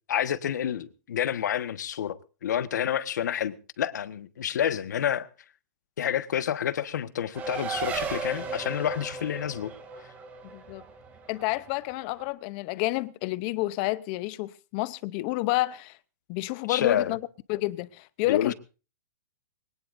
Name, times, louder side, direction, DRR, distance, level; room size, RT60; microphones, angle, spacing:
voice 1, 0.1-5.3 6.0-9.7 16.7-17.1 18.3-18.5, left 9 dB, 60° left, 1.4 m, -29 dB
Race car auto racing, 7.3-12.3, right 5 dB, 15° right, 2.6 m, -36 dB
voice 2, 10.4-10.8 11.3-16.0 16.3-18.5, left 19 dB, 25° left, 0.7 m, -30 dB
23.5 x 18.0 x 2.6 m
hypercardioid pair, 170°, 10 cm